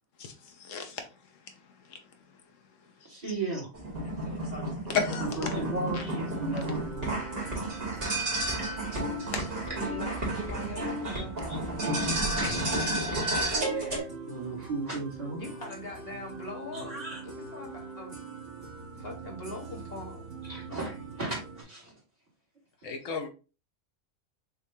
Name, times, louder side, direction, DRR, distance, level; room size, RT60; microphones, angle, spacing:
voice 1, 0.6-1.0 1.9-2.0 4.9-5.3 9.3-9.4 22.8-23.3, left 6 dB, 80° left, 1.1 m, -32 dB
voice 2, 3.0-3.7 5.2-7.2 7.7-7.8 11.0-11.2 11.5-11.6 12.0-15.4 16.7-17.2 20.4-21.9, right 2 dB, 30° right, 1.9 m, -37 dB
sound 1, 3.7-14.0, right 1 dB, 50° right, 2.3 m, -31 dB
sound 2, 5.1-21.6, right 4 dB, 70° right, 2.6 m, -43 dB
voice 3, 5.4-5.7 9.7-11.4 15.3-18.2 19.0-20.2, left 1 dB, 50° left, 1.3 m, -41 dB
6.5 x 2.4 x 2.7 m
omnidirectional pair, 1.3 m